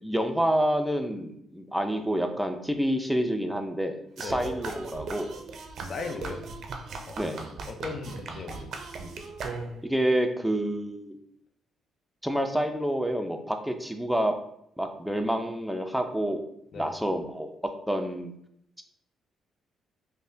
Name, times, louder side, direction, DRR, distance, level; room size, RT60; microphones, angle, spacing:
voice 1, 0.0-5.4 7.2-7.4 9.8-11.2 12.2-14.3 14.8-16.4 16.7-17.5 17.9-18.3, equal, ahead, 5 dB, 0.5 m, -28 dB
sound 1, 4.2-10.0, right 4 dB, 65° right, 0.5 m, -38 dB
voice 2, 5.8-6.5 7.1-7.2 7.6-8.7 16.7-16.9, left 4 dB, 55° left, 5 dB, 0.6 m, -37 dB
5.2 x 2.1 x 2.7 m, 0.73 s
cardioid pair, 90°, 0 cm